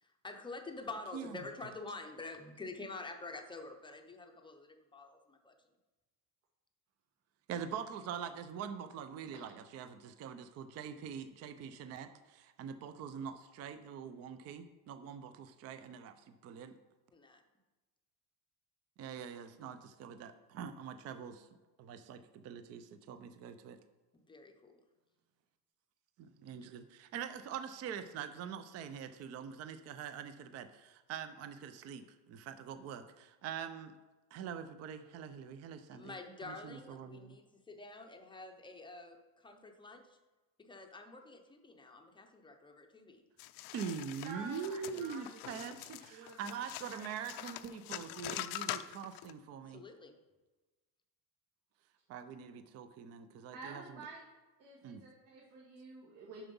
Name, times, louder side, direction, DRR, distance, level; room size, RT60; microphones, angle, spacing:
voice 1, 0.0-5.6 17.1-17.4 24.1-24.8 35.9-40.2 40.6-43.2 49.7-50.1, left 3 dB, 10° left, 4 dB, 0.6 m, -48 dB
voice 2, 7.5-16.8 19.0-21.5 21.8-23.8 26.2-33.9 34.3-36.1 36.4-37.4 43.7-49.8 52.1-54.0 54.8-55.0, right 7 dB, 35° right, 10 dB, 0.4 m, -44 dB
sound 1, 43.4-49.3, left 14 dB, 65° left, 0.5 m, -44 dB
voice 3, 44.2-45.7 46.1-46.6 47.3-47.4 47.9-48.4 53.5-54.2 54.6-56.5, right 3 dB, 70° right, -4 dB, 2.1 m, -50 dB
7.3 x 5.8 x 5.4 m, 1.2 s
cardioid pair, 160°, 44 cm